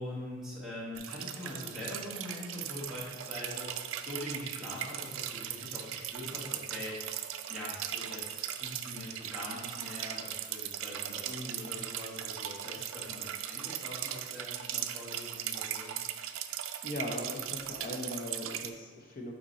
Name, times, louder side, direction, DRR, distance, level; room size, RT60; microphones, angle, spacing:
voice 1, 0.0-7.0 7.5-15.9, left 1 dB, 5° right, -9 dB, 1.6 m, -43 dB
sound 1, 0.9-18.7, right 10 dB, 75° right, 0.4 m, -39 dB
voice 2, 16.8-19.3, left 1 dB, 45° left, 1 dB, 0.8 m, -39 dB
5.4 x 4.4 x 4.1 m, 1.5 s
head